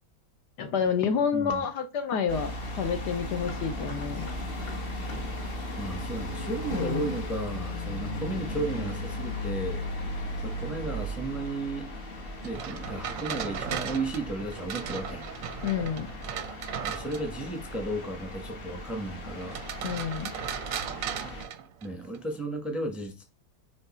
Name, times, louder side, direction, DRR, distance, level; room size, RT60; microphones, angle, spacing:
voice 1, 0.6-4.3 6.7-7.1 15.6-16.1 19.8-20.3, left 7 dB, 70° left, 1.2 m, -29 dB
voice 2, 1.3-1.7 5.8-9.8 10.4-11.9 12.4-15.3 16.8-19.6 21.8-23.2, right 2 dB, ahead, 0.8 m, -34 dB
sound 1, 2.3-21.4, left 1 dB, 35° left, 1.1 m, -36 dB
sound 2, 12.4-17.5 19.4-22.2, right 8 dB, 65° right, 0.8 m, -36 dB
4.9 x 4.5 x 4.2 m
omnidirectional pair, 2.0 m